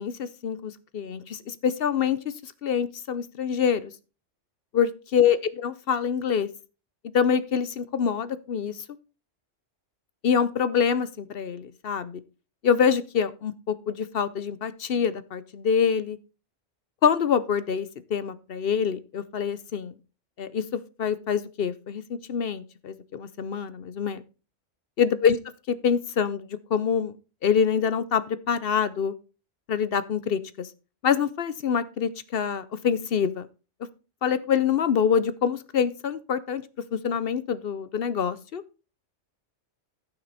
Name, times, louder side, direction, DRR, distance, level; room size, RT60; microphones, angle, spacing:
voice 1, 0.0-3.9 4.7-6.5 7.1-8.8 10.2-12.2 12.6-16.2 17.0-19.9 20.4-24.2 25.0-25.4 25.7-27.1 27.4-29.1 29.7-30.7 31.0-33.5 34.2-36.6 36.9-38.6, left 7 dB, 55° left, 14 dB, 0.8 m, -25 dB
13.5 x 6.0 x 4.1 m, 0.33 s
omnidirectional pair, 1.3 m